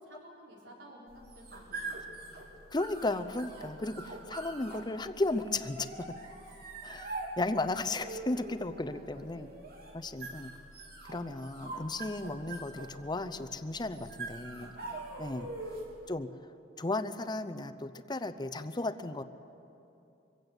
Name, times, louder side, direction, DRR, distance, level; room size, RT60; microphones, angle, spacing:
voice 1, 0.0-2.7 6.5-6.7 8.7-9.6 12.3-12.6 14.5-15.0, equal, 75° right, -3 dB, 4.5 m, -55 dB
sound 1, 1.1-16.0, right 2 dB, 55° right, 3.0 m, -44 dB
voice 2, 2.7-6.1 6.8-9.5 9.9-10.5 11.1-14.7 15.2-15.5 16.1-16.3 16.8-19.2, left 2 dB, 25° left, 10 dB, 0.7 m, -35 dB
24.0 x 16.0 x 8.1 m, 2.8 s
head